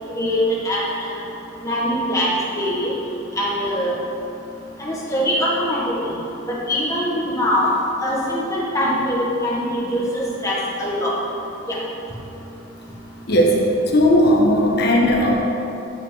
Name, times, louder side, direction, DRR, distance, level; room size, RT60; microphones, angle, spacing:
voice 1, 1.6-2.3 2.6-2.9 3.4-3.9 4.8-6.1 6.5-7.7 8.0-11.1 11.7-11.8, equal, 15° left, -5 dB, 1.6 m, -22 dB
voice 2, 13.3-13.7 13.9-15.3, equal, 50° left, -1 dB, 1.3 m, -16 dB
14.0 x 5.2 x 3.9 m, 2.8 s
head